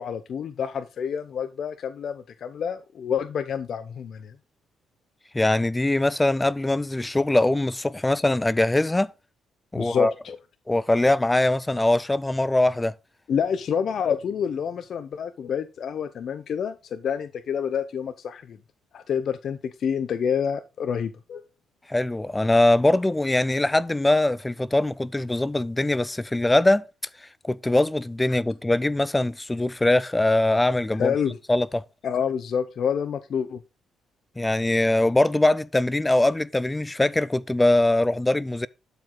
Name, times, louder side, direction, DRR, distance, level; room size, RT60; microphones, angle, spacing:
voice 1, 0.0-4.3 9.8-10.4 13.3-18.6 18.9-21.4 31.0-31.4 32.0-33.6, left 7 dB, 60° left, 0.6 m, -28 dB
voice 2, 5.3-9.1 9.7-10.1 10.7-12.9 21.9-26.9 27.2-31.1 31.5-31.8 34.4-38.7, left 2 dB, 15° left, 0.3 m, -22 dB
11.5 x 4.9 x 3.8 m
cardioid pair, 90°, 0 cm